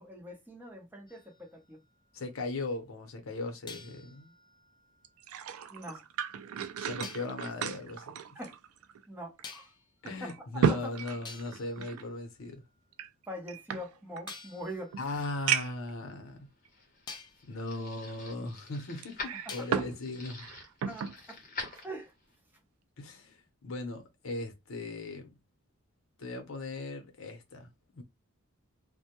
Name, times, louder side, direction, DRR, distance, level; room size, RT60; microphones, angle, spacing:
voice 1, 0.0-1.8 5.7-6.0 8.3-8.6 9.1-9.7 10.2-10.3 10.7-10.9 13.3-14.9 19.7-19.8 20.9-21.4 21.8-22.1, equal, 10° right, 0.7 m, -43 dB
sound 1, 1.1-2.5 3.7-5.8 7.0-7.4 9.4-10.0 10.8-10.9 11.2-12.9 14.3-16.4 17.1-17.5 19.5-20.1, left 5 dB, 20° left, 0.3 m, -50 dB
voice 2, 2.1-4.3 6.8-8.1 10.0-12.6 15.0-16.5 17.5-20.5 23.0-25.3 26.2-28.0, left 2 dB, 75° left, 0.7 m, -38 dB
sound 2, 5.0-9.0 9.4-9.5 10.1-12.0 12.9-14.4 14.9-15.0 15.5-15.9 16.6-16.7 19.0-20.0 20.3-21.2 21.6-21.8, right 7 dB, 85° right, 0.3 m, -34 dB
sound 3, 16.4-22.4, left 3 dB, 40° left, 0.8 m, -45 dB
2.1 x 2.1 x 2.8 m
head